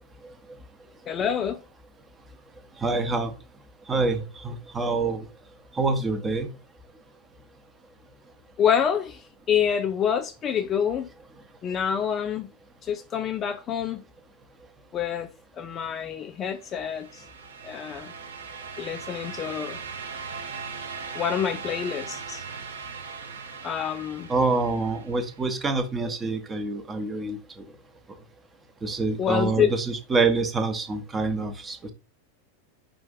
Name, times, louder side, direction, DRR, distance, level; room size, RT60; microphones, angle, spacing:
voice 1, 1.1-1.6 8.6-11.1 11.6-12.5 12.8-14.0 14.9-15.3 15.6-17.2 17.6-18.1 18.8-19.8 21.1-22.4 23.6-24.3 29.2-29.8, left 8 dB, 25° left, 0.4 m, -27 dB
voice 2, 2.8-3.3 3.9-5.2 5.8-6.5 24.3-27.4 28.8-31.9, right 3 dB, 15° right, 0.7 m, -26 dB
sound 1, 16.6-25.5, right 5 dB, 65° right, 0.7 m, -39 dB
5.0 x 2.5 x 3.7 m
figure-of-eight pair, 90°, 0 cm